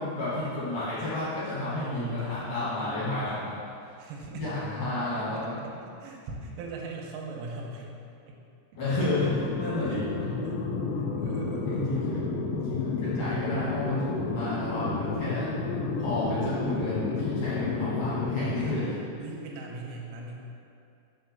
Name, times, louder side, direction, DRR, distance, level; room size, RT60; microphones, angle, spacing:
voice 1, 0.0-3.6 4.3-5.6 8.8-10.1 11.7-12.2 12.5-15.5 16.0-18.9, left 2 dB, 55° left, -11 dB, 2.5 m, -31 dB
voice 2, 1.4-3.4 4.0-4.5 5.1-8.0 8.3-8.4 9.8-10.0 10.4-10.6 11.0-12.2 18.6-20.4, right 2 dB, 85° right, -1 dB, 3.3 m, -40 dB
sound 1, 9.0-18.9, left 3 dB, 80° left, 2.9 m, -31 dB
6.3 x 5.8 x 6.7 m, 2.6 s
omnidirectional pair, 5.8 m